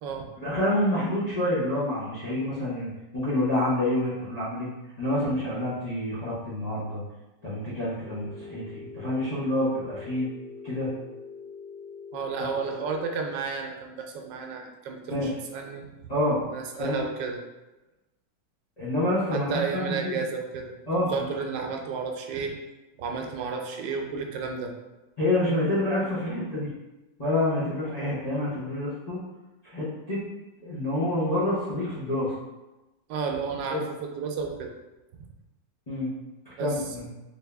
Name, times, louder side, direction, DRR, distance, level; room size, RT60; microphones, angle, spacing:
voice 1, 0.4-4.7 5.0-7.0 7.4-10.3 10.6-10.9 12.4-12.5 15.1-15.3 16.1-16.5 16.8-17.0 18.8-20.2 20.9-21.3 25.2-26.7 27.2-29.2 29.6-30.2 30.6-32.3 33.7-33.8 35.9-36.1 36.4-37.1, left 1 dB, 30° left, -11 dB, 0.8 m, -27 dB
Telephone, 8.0-13.0, left 5 dB, 35° right, 0.7 m, -43 dB
voice 2, 12.1-16.1 16.5-17.4 19.3-22.6 23.0-24.7 33.1-34.7 36.6-36.7, right 5 dB, 85° right, 3 dB, 1.3 m, -32 dB
3.6 x 2.7 x 3.3 m, 1.0 s
omnidirectional pair, 1.9 m